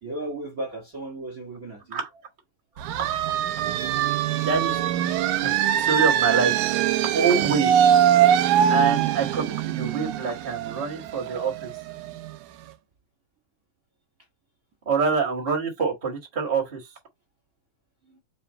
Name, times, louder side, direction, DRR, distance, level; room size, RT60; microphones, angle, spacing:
voice 1, 0.0-2.0 18.0-18.2, right 2 dB, 40° right, 1.2 m, -36 dB
sound 1, 2.8-12.3, right 10 dB, 80° right, 2.0 m, -22 dB
voice 2, 4.3-4.8 5.3-5.5 5.8-7.7 8.7-11.7 14.8-16.9, right 5 dB, 25° right, 1.3 m, -26 dB
5.0 x 2.3 x 4.3 m
omnidirectional pair, 3.5 m